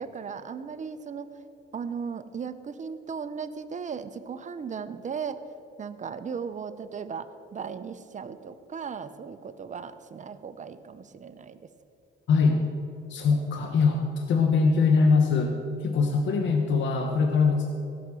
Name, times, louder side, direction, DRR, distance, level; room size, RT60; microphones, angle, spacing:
voice 1, 0.0-1.3 1.7-5.4 5.8-11.7, right 6 dB, 40° right, 11 dB, 0.8 m, -37 dB
voice 2, 12.3-12.6 13.1-15.5 15.8-17.7, left 4 dB, 70° left, 3 dB, 1.1 m, -22 dB
15.5 x 6.0 x 7.5 m, 2.8 s
cardioid pair, 90°, 20 cm